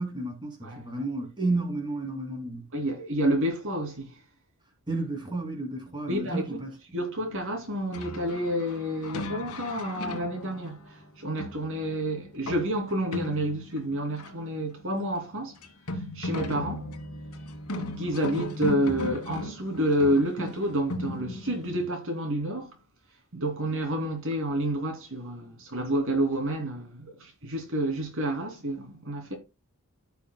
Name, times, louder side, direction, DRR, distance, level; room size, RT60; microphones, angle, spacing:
voice 1, 0.0-2.7 4.9-6.7, right 2 dB, 20° right, 2.5 m, -32 dB
voice 2, 2.7-4.2 6.1-6.6 6.9-15.6 16.1-16.9 18.0-22.7 23.3-29.3, right 1 dB, 65° right, 2.7 m, -29 dB
sound 1, 7.9-14.6 14.9-15.0 15.2-15.3 15.6-21.9, left 1 dB, 70° left, 1.5 m, -37 dB
15.0 x 5.7 x 2.2 m
head